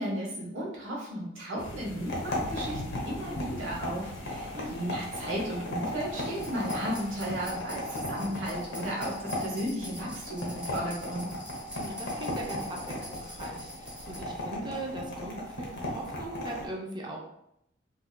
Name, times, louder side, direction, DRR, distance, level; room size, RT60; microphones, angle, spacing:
voice 1, 0.0-11.3, equal, 85° right, -4 dB, 1.1 m, -34 dB
sound 1, 1.6-7.5, left 1 dB, 85° left, 0.6 m, -43 dB
sound 2, 2.1-16.7, left 1 dB, 65° left, 0.9 m, -37 dB
voice 2, 4.5-4.8 11.7-17.2, right 1 dB, 25° right, -1 dB, 0.6 m, -40 dB
sound 3, 6.2-14.2, equal, 5° right, 0.9 m, -46 dB
3.6 x 2.7 x 2.2 m, 0.78 s
head